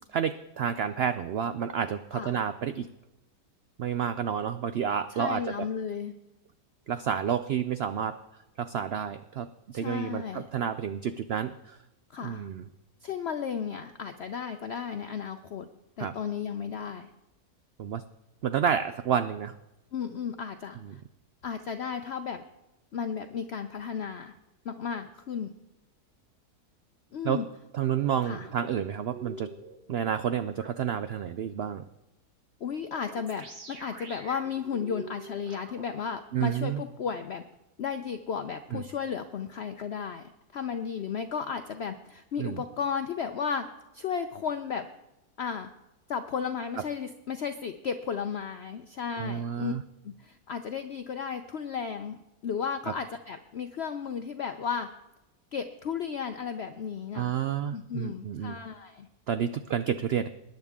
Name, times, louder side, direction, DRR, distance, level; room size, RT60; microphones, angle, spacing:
voice 1, 0.1-2.9 3.8-5.4 6.9-8.2 8.6-9.5 9.7-11.8 12.2-12.6 16.0-16.1 17.8-18.0 18.4-19.5 20.9-21.0 27.2-27.4 27.7-29.5 29.9-31.8 36.3-36.8 38.7-38.8 42.4-42.6 49.2-49.8 57.1-58.6 59.3-60.3, right 8 dB, 80° right, 11 dB, 0.5 m, -30 dB
voice 2, 2.1-2.4 5.1-6.1 9.7-10.5 12.1-12.5 13.0-15.7 16.0-17.1 19.9-21.0 21.4-22.4 22.9-24.3 24.6-25.5 27.1-27.5 28.2-28.5 32.6-37.4 37.8-43.7 43.9-44.9 45.4-45.7 46.1-49.7 50.0-54.9 55.5-57.3 57.7-59.1, left 6 dB, 60° left, 8 dB, 0.7 m, -34 dB
sound 1, 28.3-29.8 30.6-30.7 32.9-35.9, right 3 dB, 45° right, 1.7 m, -45 dB
21.0 x 10.0 x 3.6 m, 0.95 s
omnidirectional pair, 1.6 m